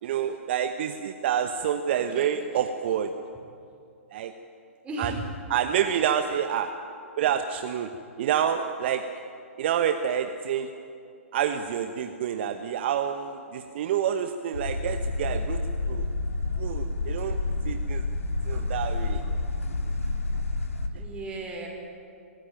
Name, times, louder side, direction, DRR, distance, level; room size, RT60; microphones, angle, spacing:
voice 1, 0.0-3.1 4.1-4.3 5.0-5.1 5.5-6.7 7.2-7.9 8.2-9.0 9.6-10.7 11.3-16.1 16.6-17.4 17.6-18.0 18.4-19.2, right 9 dB, 50° right, 7 dB, 1.1 m, -28 dB
voice 2, 2.0-2.4 4.8-5.3 18.5-18.8 19.0-19.3 21.0-21.7, right 2 dB, 15° right, 0 dB, 5.4 m, -36 dB
sound 1, 14.5-20.9, left 2 dB, 85° left, 2.2 m, -29 dB
24.5 x 14.5 x 9.1 m, 2.5 s
figure-of-eight pair, 120°, 7 cm